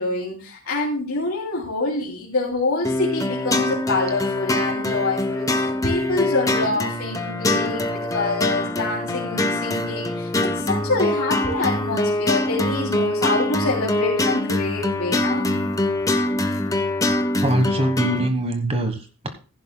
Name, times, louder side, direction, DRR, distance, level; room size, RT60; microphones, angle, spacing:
voice 1, 0.0-15.5, left 3 dB, 75° left, 3.1 m, -26 dB
sound 1, 2.8-18.3, left 1 dB, 15° left, 0.8 m, -23 dB
voice 2, 17.4-19.3, right 1 dB, 30° right, 1.2 m, -23 dB
15.0 x 11.0 x 2.2 m
head